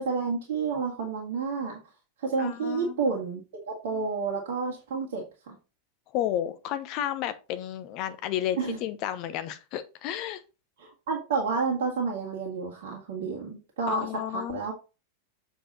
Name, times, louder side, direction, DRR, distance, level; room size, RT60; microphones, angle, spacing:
voice 1, 0.0-1.8 2.2-3.4 3.7-5.6 8.6-8.8 10.8-14.1 14.3-14.7, right 5 dB, 55° right, 1.9 m, -30 dB
voice 2, 2.4-3.1 6.1-10.4 13.9-14.6, left 11 dB, 40° left, 1.0 m, -32 dB
7.5 x 5.0 x 4.0 m
figure-of-eight pair, 90°, 0 cm